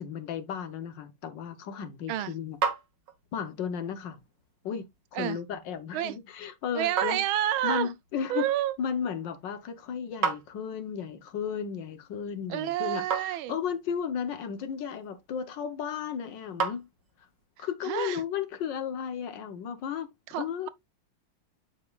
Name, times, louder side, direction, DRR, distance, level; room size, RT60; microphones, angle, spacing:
voice 1, 0.0-2.6 3.3-4.2 4.6-4.9 5.1-7.2 7.6-8.5 8.8-16.8 17.6-20.7, left 7 dB, 65° left, 1.6 m, -34 dB
sound 1, 1.7-17.5, right 5 dB, 60° right, 1.9 m, -39 dB
voice 2, 6.7-7.9 8.3-8.8 12.5-13.6 17.6-18.2 20.3-20.7, right 12 dB, 85° right, 1.5 m, -29 dB
8.3 x 7.1 x 2.4 m
omnidirectional pair, 2.2 m